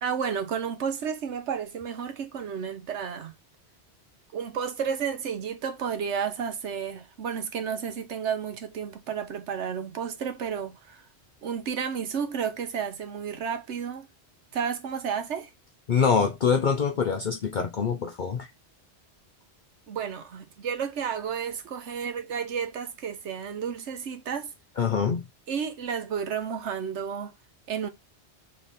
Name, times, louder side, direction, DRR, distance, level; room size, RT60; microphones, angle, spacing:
voice 1, 0.0-3.3 4.3-11.0 11.4-14.1 14.5-15.5 19.9-24.5 25.5-27.3 27.7-27.9, right 7 dB, 90° right, 1.2 m, -32 dB
voice 2, 15.9-18.5 24.8-25.2, left 6 dB, 50° left, 0.7 m, -24 dB
3.6 x 3.3 x 4.0 m
omnidirectional pair, 1.1 m